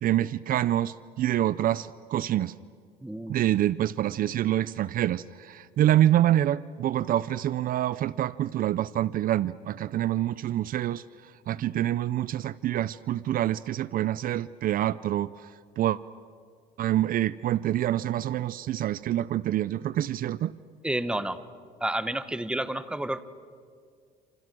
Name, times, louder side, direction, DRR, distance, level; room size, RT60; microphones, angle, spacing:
voice 1, 0.0-2.5 3.3-16.0 16.8-20.5, right 12 dB, 60° right, 18 dB, 0.6 m, -26 dB
voice 2, 3.0-3.4 20.8-21.4 21.8-23.2, right 1 dB, 5° right, 12 dB, 1.2 m, -30 dB
28.5 x 27.5 x 6.2 m, 2.1 s
cardioid pair, 110°, 17 cm